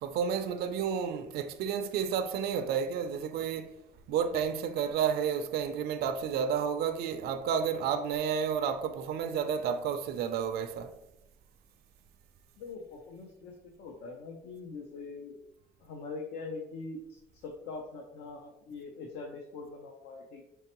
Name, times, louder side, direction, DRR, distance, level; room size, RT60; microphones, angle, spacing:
voice 1, 0.0-3.7 4.1-10.9, right 7 dB, 70° right, 0.4 m, -31 dB
voice 2, 12.6-15.4 15.8-20.4, left 4 dB, 85° left, 0.6 m, -43 dB
4.5 x 3.3 x 2.9 m
cardioid pair, 110°, 17 cm